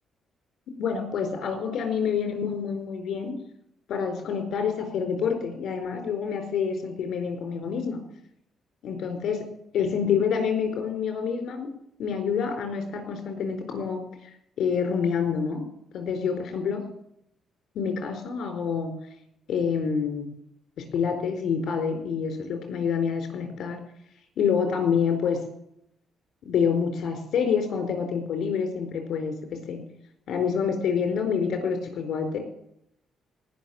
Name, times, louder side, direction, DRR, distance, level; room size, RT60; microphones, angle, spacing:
voice 1, 0.8-3.4 3.9-8.0 8.8-9.5 9.7-11.7 12.0-14.0 14.6-15.6 15.9-16.8 17.7-18.9 19.5-20.3 20.8-23.8 24.4-25.4 26.4-29.4 29.7-29.8 30.3-32.4, left 6 dB, 65° left, 6 dB, 4.5 m, -27 dB
18.5 x 6.5 x 8.9 m, 0.75 s
cardioid pair, 90°, 0 cm